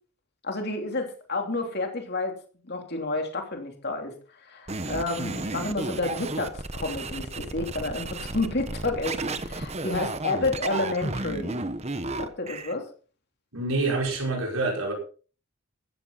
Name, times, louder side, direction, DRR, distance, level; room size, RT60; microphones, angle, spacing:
voice 1, 0.4-2.4 2.6-4.1 4.5-11.6 12.2-12.9, left 2 dB, 45° left, 4 dB, 3.2 m, -30 dB
sound 1, 4.7-12.7, right 2 dB, 30° right, 1.1 m, -33 dB
voice 2, 13.5-14.9, right 3 dB, 65° right, 0 dB, 5.4 m, -26 dB
15.0 x 14.0 x 4.1 m, 0.39 s
head